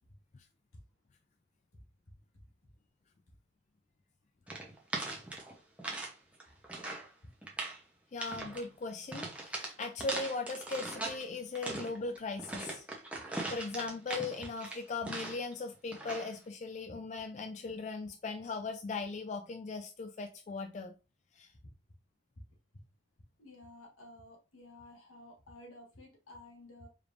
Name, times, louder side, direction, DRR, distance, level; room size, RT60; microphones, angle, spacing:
sound 1, 4.5-6.1 6.4-7.1 7.4-7.8 8.2-8.6 9.1-11.2 11.6-15.5 15.9-16.3, right 2 dB, 5° right, 0.7 m, -40 dB
voice 1, 8.1-12.8 13.5-20.9 21.4-21.5, left 3 dB, 35° left, 0.3 m, -39 dB
voice 2, 23.4-26.9, left 1 dB, 85° left, 1.6 m, -53 dB
4.8 x 3.3 x 2.5 m
head